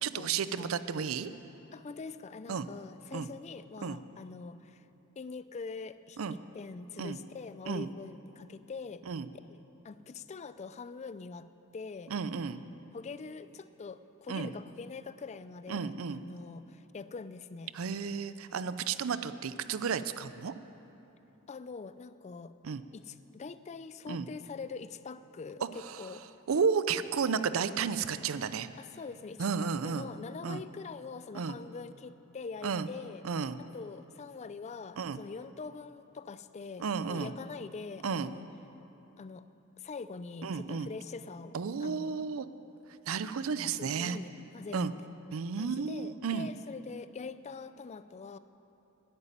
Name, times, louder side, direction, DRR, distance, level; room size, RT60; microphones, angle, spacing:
voice 1, 0.0-1.3 2.5-2.7 3.1-3.3 3.8-4.0 6.2-6.4 7.0-7.2 7.7-7.9 9.1-9.3 12.1-12.6 14.3-14.5 15.7-16.2 17.7-20.5 22.6-22.8 24.1-24.3 25.8-26.1 26.5-28.7 29.4-30.1 30.4-30.6 31.3-31.6 32.6-32.9 33.2-33.6 35.0-35.2 36.8-37.3 38.0-38.3 40.4-40.9 41.5-42.5 43.1-44.2 44.7-44.9 45.3-46.5, right 6 dB, 70° right, 13 dB, 0.5 m, -32 dB
voice 2, 1.7-4.8 5.2-9.0 9.5-11.5 11.7-12.1 12.9-17.7 21.5-22.5 22.9-26.2 28.8-33.2 33.6-38.4 39.2-39.4 39.8-42.2 43.8-45.1 45.6-48.4, left 4 dB, 30° left, 14 dB, 0.3 m, -44 dB
11.0 x 8.3 x 9.6 m, 3.0 s
head